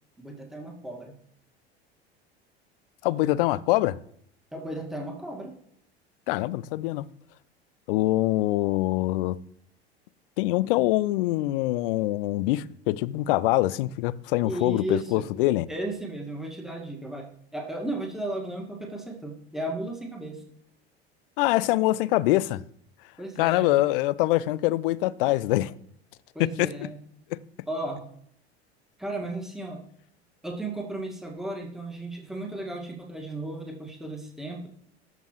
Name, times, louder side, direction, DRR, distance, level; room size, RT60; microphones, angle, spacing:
voice 1, 0.2-1.1 4.5-5.5 14.4-15.2 15.7-20.4 23.2-23.8 26.3-27.0 27.7-28.1 29.0-29.8 30.4-34.7, right 1 dB, ahead, 1.9 m, -35 dB
voice 2, 3.0-4.0 6.3-7.0 7.9-9.4 10.4-15.7 21.4-22.6 23.4-25.7 26.6-26.7, left 17 dB, 60° left, 0.5 m, -24 dB
13.5 x 5.3 x 3.1 m
figure-of-eight pair, 75°, 32 cm